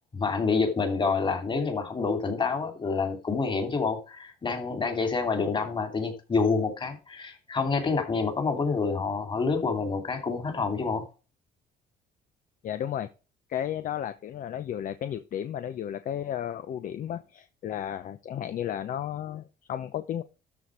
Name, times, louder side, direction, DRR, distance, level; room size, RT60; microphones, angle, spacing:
voice 1, 0.1-11.0, left 4 dB, 30° left, 2.8 m, -27 dB
voice 2, 12.6-13.1 13.5-20.2, left 10 dB, 55° left, 0.8 m, -33 dB
13.0 x 4.3 x 4.8 m
cardioid pair, 110°, 17 cm